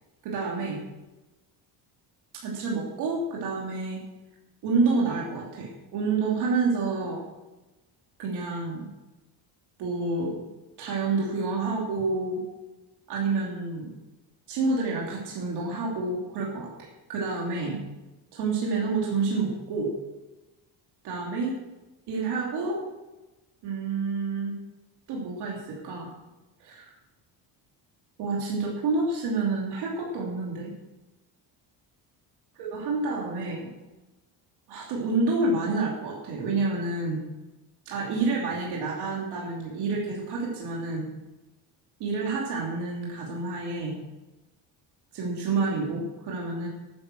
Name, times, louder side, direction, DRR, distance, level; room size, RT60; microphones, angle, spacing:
voice 1, 0.2-0.8 2.4-4.0 4.6-7.2 8.2-8.9 9.8-10.4 10.8-12.4 13.1-13.9 14.5-17.8 18.3-19.9 21.0-21.5 22.1-22.8 23.6-24.6 25.1-26.1 26.6-26.9 28.2-30.7 32.5-33.7 34.7-37.2 37.8-41.1 42.0-44.0 45.1-46.7, right 3 dB, 65° right, -3 dB, 3.4 m, -28 dB
12.5 x 10.5 x 6.4 m, 1.1 s
cardioid pair, 180°, 43 cm